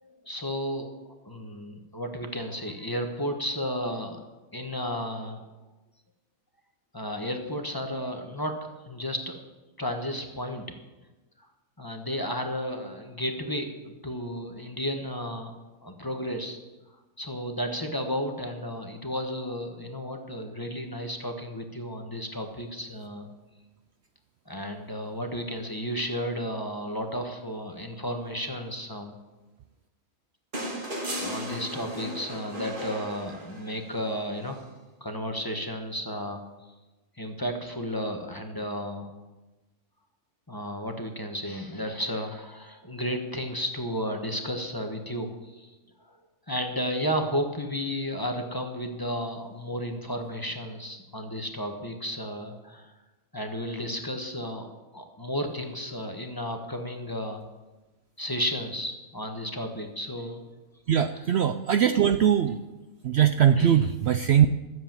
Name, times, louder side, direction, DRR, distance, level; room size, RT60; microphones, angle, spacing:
voice 1, 0.0-0.9 1.2-4.2 4.5-5.4 6.9-9.4 9.8-10.7 11.8-15.5 15.8-16.6 17.2-23.3 24.5-29.1 31.2-34.6 35.0-36.4 37.2-39.1 40.5-45.7 46.5-52.9 53.3-54.7 54.9-57.4 58.2-60.4 63.6-63.8, equal, 15° left, 4 dB, 1.2 m, -33 dB
sound 1, 30.5-33.9 35.4-35.5, equal, 40° right, 2.1 m, -35 dB
voice 2, 60.9-62.6 63.0-64.5, right 9 dB, 65° right, 9 dB, 0.7 m, -21 dB
13.5 x 7.8 x 7.4 m, 1.1 s
omnidirectional pair, 1.4 m